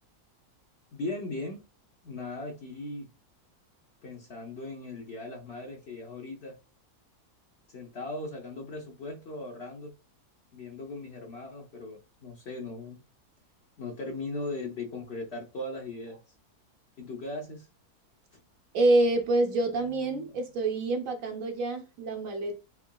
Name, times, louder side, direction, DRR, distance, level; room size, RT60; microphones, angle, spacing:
voice 1, 0.9-1.6 2.0-3.1 4.0-6.5 7.7-9.9 10.5-13.0 13.8-16.2 17.0-17.7, left 2 dB, 50° left, 0.9 m, -38 dB
voice 2, 18.7-22.6, right 2 dB, 65° right, 1.0 m, -27 dB
5.9 x 2.8 x 2.2 m
omnidirectional pair, 1.7 m